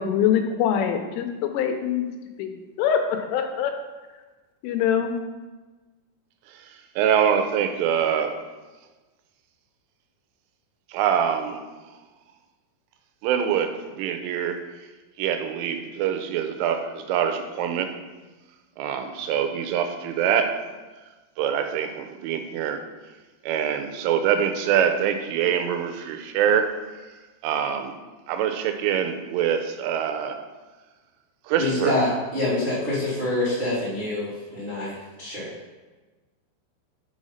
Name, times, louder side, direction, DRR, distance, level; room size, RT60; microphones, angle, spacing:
voice 1, 0.0-2.1 2.4-3.8 4.6-5.2, left 8 dB, 85° left, 6 dB, 3.2 m, -24 dB
voice 2, 7.0-8.4 10.9-11.6 13.2-14.6 15.2-17.9 18.8-20.6 21.4-22.8 23.4-26.7 27.4-28.0 28.3-30.4 31.5-31.9, right 8 dB, 85° right, 7 dB, 3.1 m, -24 dB
voice 3, 31.6-35.5, left 1 dB, 35° right, -10 dB, 0.8 m, -26 dB
6.3 x 5.7 x 5.6 m, 1.2 s
omnidirectional pair, 5.7 m